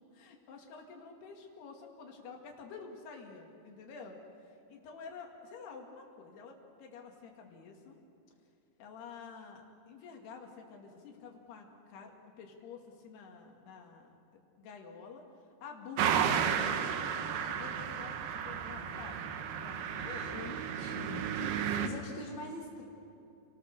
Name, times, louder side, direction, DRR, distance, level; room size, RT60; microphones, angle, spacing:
voice 1, 0.0-8.0 8.8-12.1 12.4-14.2 14.6-15.3 15.6-20.4, left 5 dB, 80° left, 1 dB, 4.3 m, -49 dB
sound 1, 16.0-21.9, right 8 dB, 80° right, 3.1 m, -33 dB
voice 2, 20.0-22.8, left 2 dB, 35° left, -1 dB, 2.3 m, -44 dB
30.0 x 18.5 x 6.7 m, 2.7 s
omnidirectional pair, 4.6 m